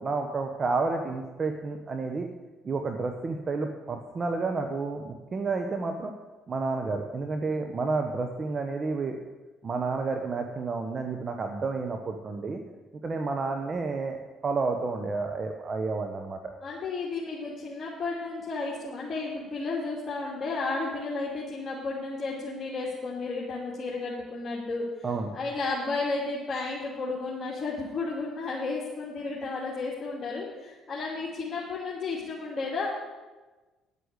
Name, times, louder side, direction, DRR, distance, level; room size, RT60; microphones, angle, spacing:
voice 1, 0.0-2.3 2.6-6.1 6.5-9.2 9.6-12.6 13.0-16.4 25.0-25.3, right 3 dB, 40° right, 5 dB, 1.1 m, -30 dB
voice 2, 16.6-25.1 25.3-32.9, left 3 dB, 35° left, -5 dB, 2.9 m, -33 dB
9.8 x 8.1 x 8.3 m, 1.2 s
supercardioid pair, 65°, 0 cm